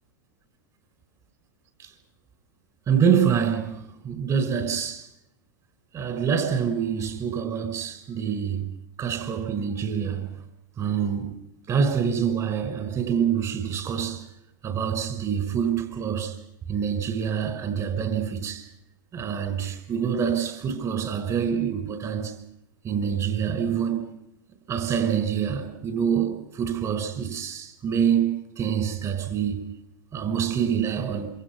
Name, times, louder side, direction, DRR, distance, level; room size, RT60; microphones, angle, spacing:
voice 1, 2.9-5.1 5.9-8.7 9.0-10.3 10.8-11.4 11.7-14.2 14.6-16.4 16.7-18.7 19.1-22.3 22.8-24.0 24.7-29.6 30.1-31.3, right 7 dB, 30° right, 5.0 m, -26 dB
27.0 x 24.5 x 6.0 m
hypercardioid pair, 110°, 11 cm